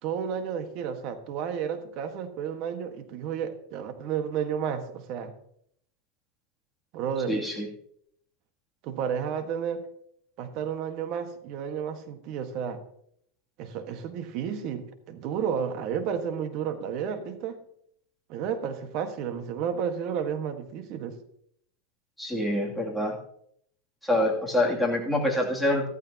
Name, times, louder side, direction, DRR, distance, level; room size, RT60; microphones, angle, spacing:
voice 1, 0.0-5.3 6.9-7.3 8.8-9.8 10.4-12.8 13.6-17.6 18.3-21.2, right 7 dB, 50° right, 8 dB, 1.5 m, -32 dB
voice 2, 7.3-7.7 22.2-23.2 24.0-25.9, left 1 dB, ahead, -2 dB, 2.8 m, -26 dB
14.5 x 13.5 x 2.9 m, 0.69 s
supercardioid pair, 130°, 0 cm